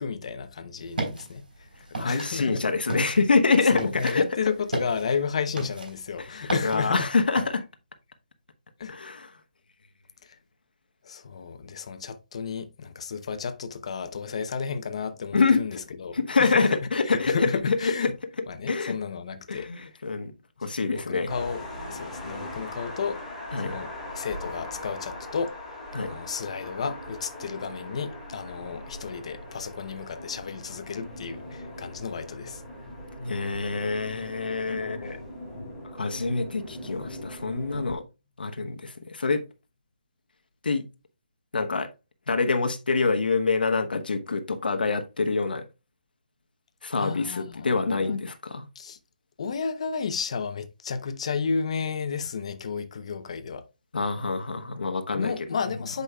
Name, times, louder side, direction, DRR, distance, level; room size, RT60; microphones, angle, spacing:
voice 1, 0.0-2.6 3.7-7.1 8.8-9.0 10.2-10.4 11.0-16.8 17.0-18.1 18.5-19.7 20.8-23.2 23.6-25.6 26.0-32.6 47.0-48.2 48.7-49.0 49.4-53.7 55.1-56.0, left 5 dB, 40° left, 0.8 m, -32 dB
sound 1, 0.8-7.5, right 2 dB, 75° right, 4.1 m, -36 dB
voice 2, 1.9-4.3 6.2-7.6 8.9-9.3 15.3-15.6 16.1-17.4 17.7-17.9 18.7-19.0 19.5-20.3 20.6-21.3 23.5-23.7 25.9-26.1 33.2-35.2 36.0-38.0 38.4-39.4 40.6-40.8 41.5-41.9 42.3-45.6 46.8-48.7 53.9-55.3, left 4 dB, 85° left, 1.2 m, -26 dB
sound 2, 21.3-37.9, left 1 dB, 5° left, 2.1 m, -40 dB
8.4 x 5.2 x 2.3 m
hypercardioid pair, 170°, 5 cm